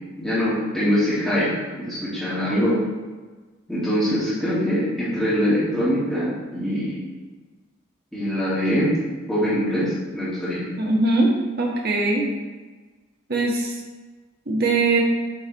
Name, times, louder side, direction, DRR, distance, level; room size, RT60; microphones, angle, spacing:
voice 1, 0.2-2.8 3.7-7.0 8.1-8.9 9.3-10.7, equal, ahead, -12 dB, 2.2 m, -23 dB
voice 2, 10.8-11.3 11.6-12.2 13.3-13.7 14.5-15.0, right 3 dB, 50° right, -1 dB, 1.4 m, -21 dB
7.9 x 4.1 x 4.1 m, 1.3 s
head